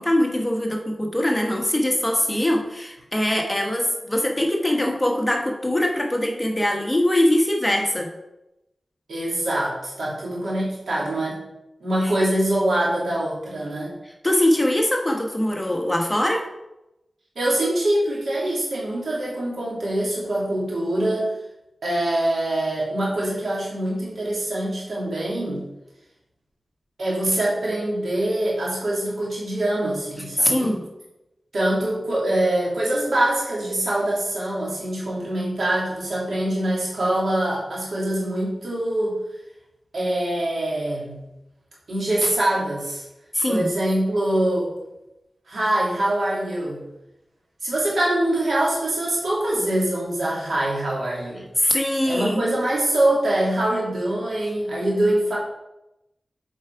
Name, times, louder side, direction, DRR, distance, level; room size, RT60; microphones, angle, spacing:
voice 1, 0.0-8.1 14.2-16.4 30.4-30.8 43.3-43.7 51.6-52.4, left 1 dB, 20° left, 1 dB, 1.3 m, -22 dB
voice 2, 9.1-11.4 11.8-13.9 17.3-21.3 21.8-25.6 27.0-30.8 31.5-39.2 39.9-41.2 41.9-43.0 43.5-44.7 45.5-46.8 47.6-51.4 52.1-55.4, right 1 dB, 80° right, -6 dB, 2.9 m, -24 dB
7.4 x 4.8 x 4.7 m, 0.92 s
cardioid pair, 55°, 0 cm